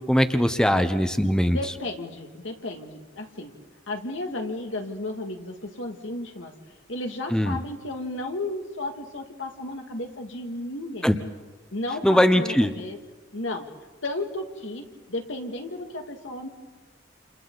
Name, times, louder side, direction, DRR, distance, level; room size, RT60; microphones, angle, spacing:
voice 1, 0.1-1.6 7.3-7.6 11.0-11.2 12.0-12.7, equal, 5° left, 9 dB, 0.8 m, -20 dB
voice 2, 1.5-3.5 3.9-6.5 6.9-11.1 11.7-13.0 13.3-13.7 14.0-16.5, left 2 dB, 80° left, 3 dB, 2.2 m, -33 dB
29.0 x 28.0 x 4.0 m, 1.3 s
head